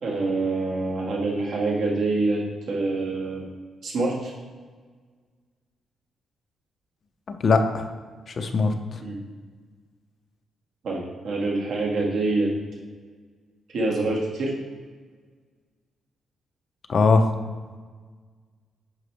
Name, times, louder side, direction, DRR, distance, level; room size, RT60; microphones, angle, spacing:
voice 1, 0.0-2.4 2.7-3.5 3.8-4.3 9.0-9.2 10.8-12.5 13.7-14.5, right 3 dB, 60° right, -2 dB, 1.9 m, -26 dB
voice 2, 7.4-7.8 8.4-8.7 16.9-17.2, left 4 dB, 40° left, 6 dB, 0.6 m, -19 dB
10.5 x 5.1 x 3.3 m, 1.5 s
wide cardioid pair, 160°, 0 cm